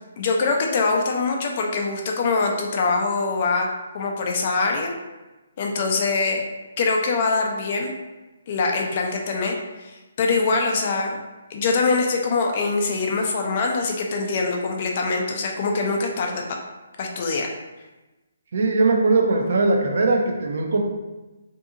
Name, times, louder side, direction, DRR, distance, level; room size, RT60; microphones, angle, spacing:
voice 1, 0.2-3.7 3.9-4.9 5.6-6.5 6.8-7.9 8.5-11.2 11.5-16.6 17.0-17.5, left 3 dB, 45° left, 1 dB, 0.4 m, -23 dB
voice 2, 18.5-20.8, right 3 dB, 60° right, 1 dB, 0.5 m, -20 dB
2.6 x 2.6 x 2.5 m, 1.1 s
hypercardioid pair, 145°, 0 cm